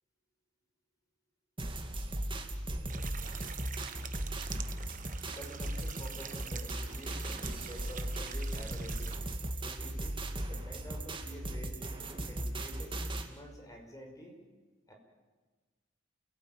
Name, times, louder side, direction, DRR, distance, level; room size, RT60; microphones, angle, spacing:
sound 1, 1.6-13.3, right 1 dB, 25° right, 2.1 m, -37 dB
Running Water, 2.9-9.2, right 8 dB, 45° right, 1.2 m, -47 dB
voice 1, 5.3-9.2 9.6-13.0 13.2-14.3 14.9-15.0, equal, 20° left, 2 dB, 5.6 m, -49 dB
29.5 x 17.0 x 9.1 m, 1.3 s
head